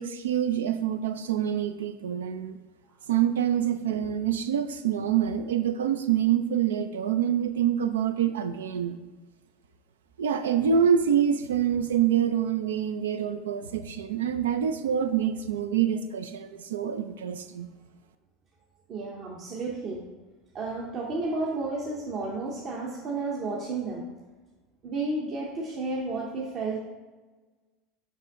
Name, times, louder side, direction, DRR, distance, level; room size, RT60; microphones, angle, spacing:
voice 1, 0.0-2.6 3.1-9.0 10.2-17.7, right 9 dB, 85° right, 10 dB, 0.4 m, -26 dB
voice 2, 18.9-20.0 20.5-24.0 24.8-26.8, right 3 dB, 50° right, -3 dB, 1.0 m, -32 dB
5.4 x 5.2 x 3.6 m, 1.3 s
hypercardioid pair, 85°, 0 cm